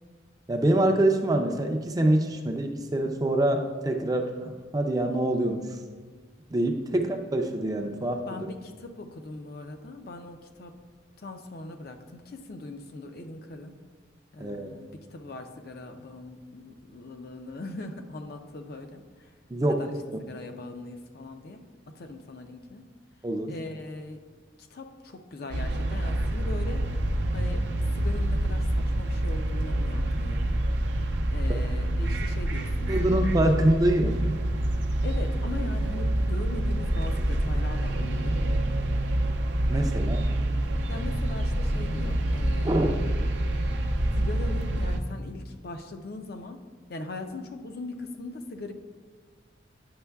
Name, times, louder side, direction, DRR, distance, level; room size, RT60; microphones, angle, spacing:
voice 1, 0.5-5.8 6.5-8.5 14.4-14.7 19.5-19.9 23.2-23.5 31.5-31.6 32.9-34.4 39.7-40.3 42.6-43.0, right 1 dB, 20° right, 4 dB, 0.4 m, -25 dB
voice 2, 8.3-10.8 11.2-13.7 14.3-19.3 19.6-19.9 20.3-22.8 23.5-24.2 24.6-26.9 27.3-27.6 27.9-30.5 31.3-33.2 35.0-39.1 40.9-42.9 44.1-46.6 46.9-48.7, left 2 dB, 55° left, 5 dB, 0.5 m, -40 dB
sound 1, 25.5-45.0, right 1 dB, 70° right, 0.6 m, -27 dB
9.5 x 6.3 x 2.3 m, 1.5 s
head